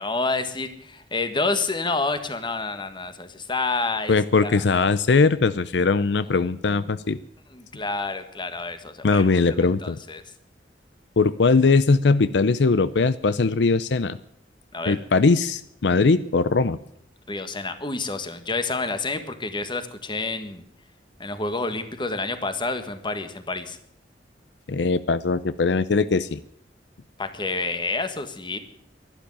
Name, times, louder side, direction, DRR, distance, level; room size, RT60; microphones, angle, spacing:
voice 1, 0.0-4.2 4.4-4.6 7.5-9.4 9.8-10.2 14.7-15.0 17.3-20.6 21.2-23.8 27.2-28.6, left 3 dB, 25° left, 9 dB, 1.6 m, -28 dB
voice 2, 4.1-7.2 9.0-10.0 11.2-14.2 14.9-16.8 24.7-26.4, left 4 dB, 80° left, 15 dB, 0.6 m, -20 dB
12.0 x 11.5 x 10.0 m, 0.71 s
head